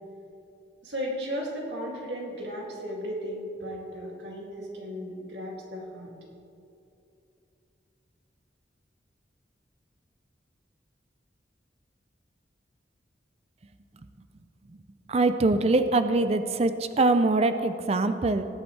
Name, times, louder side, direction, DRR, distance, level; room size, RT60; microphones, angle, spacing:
voice 1, 0.8-6.1, equal, 75° right, -2 dB, 2.4 m, -35 dB
voice 2, 15.1-18.5, right 2 dB, 35° right, 10 dB, 0.4 m, -23 dB
19.5 x 8.3 x 3.3 m, 2.7 s
head